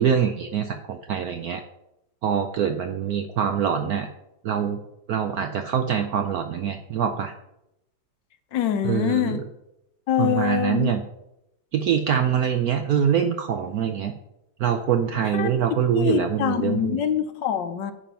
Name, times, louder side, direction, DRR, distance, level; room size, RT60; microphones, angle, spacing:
voice 1, 0.0-1.6 2.2-4.1 4.4-4.8 5.1-7.3 8.8-9.4 10.2-11.0 11.7-14.1 14.6-17.0, right 8 dB, 70° right, 6 dB, 0.9 m, -24 dB
voice 2, 8.5-9.4 10.1-10.9 15.3-15.5 15.9-17.9, left 9 dB, 70° left, 10 dB, 1.4 m, -24 dB
10.0 x 5.1 x 5.7 m, 0.85 s
omnidirectional pair, 2.1 m